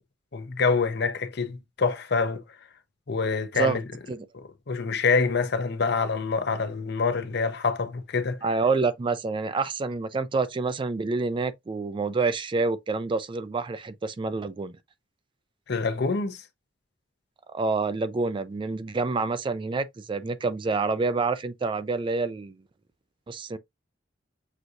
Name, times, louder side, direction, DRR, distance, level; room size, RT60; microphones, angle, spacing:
voice 1, 0.3-2.4 3.1-3.8 4.3-8.4 15.7-16.4, left 4 dB, 60° left, 0.7 m, -26 dB
voice 2, 8.4-14.8 17.5-22.5 23.3-23.6, right 4 dB, 25° right, 0.3 m, -27 dB
6.1 x 2.7 x 2.5 m
head